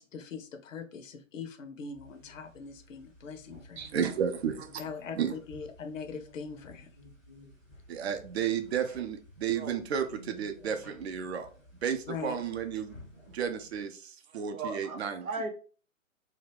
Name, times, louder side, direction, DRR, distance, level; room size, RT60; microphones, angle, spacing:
voice 1, 0.0-3.9 4.8-6.9 12.1-12.4, left 5 dB, 65° left, 0.7 m, -41 dB
sound 1, 1.9-13.9, left 1 dB, ahead, 0.4 m, -54 dB
voice 2, 3.8-4.7 5.2-5.3 7.9-11.5 11.8-13.0 13.3-15.3, right 8 dB, 50° right, 0.6 m, -32 dB
voice 3, 14.5-15.5, right 3 dB, 85° right, 0.9 m, -37 dB
2.8 x 2.4 x 3.4 m
figure-of-eight pair, 140°, 41 cm